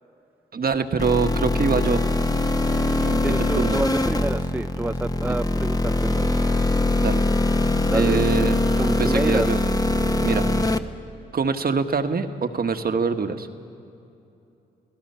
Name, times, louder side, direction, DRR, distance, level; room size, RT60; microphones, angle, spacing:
voice 1, 0.5-2.0 3.0-3.8 7.0-7.2 7.9-8.6 9.0-9.6 10.2-10.4 11.3-13.5, right 5 dB, 45° right, 8 dB, 1.4 m, -24 dB
sound 1, 1.0-10.8, left 2 dB, 20° left, 1.2 m, -22 dB
voice 2, 3.2-6.4 7.9-8.2 8.8-9.5, right 1 dB, 10° right, 11 dB, 0.4 m, -28 dB
29.0 x 18.0 x 5.6 m, 2.8 s
supercardioid pair, 50°, 21 cm